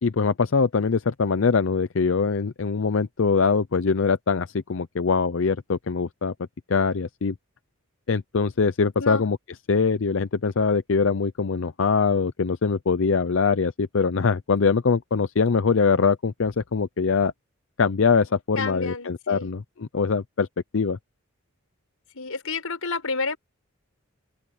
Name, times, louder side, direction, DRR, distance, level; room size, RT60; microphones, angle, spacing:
voice 1, 0.0-6.3 6.7-7.3 8.1-9.4 9.7-17.3 17.8-20.5 20.7-21.0, left 5 dB, 60° left, 0.5 m, -23 dB
voice 2, 18.6-19.5 22.1-23.4, left 4 dB, 90° left, 5.7 m, -29 dB
open air
head